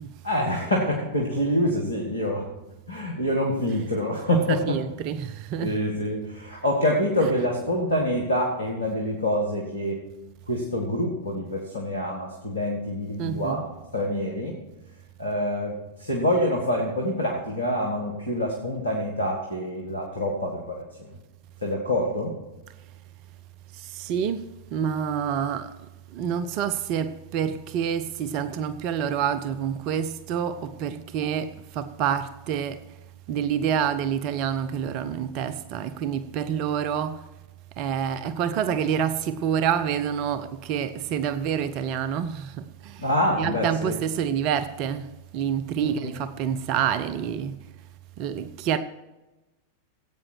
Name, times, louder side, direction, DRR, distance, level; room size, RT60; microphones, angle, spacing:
voice 1, 0.2-2.5 2.9-4.8 5.6-10.0 10.5-13.6 13.9-14.6 15.2-20.8 21.6-22.3 43.0-43.9 45.8-46.1, left 1 dB, 80° left, 1.8 m, -26 dB
voice 2, 4.3-5.8 13.2-13.6 23.7-33.0 33.3-37.3 37.8-43.1 43.4-47.7 48.2-48.8, right 8 dB, 40° right, 0.6 m, -28 dB
16.0 x 8.7 x 4.7 m
figure-of-eight pair, 90°, 0 cm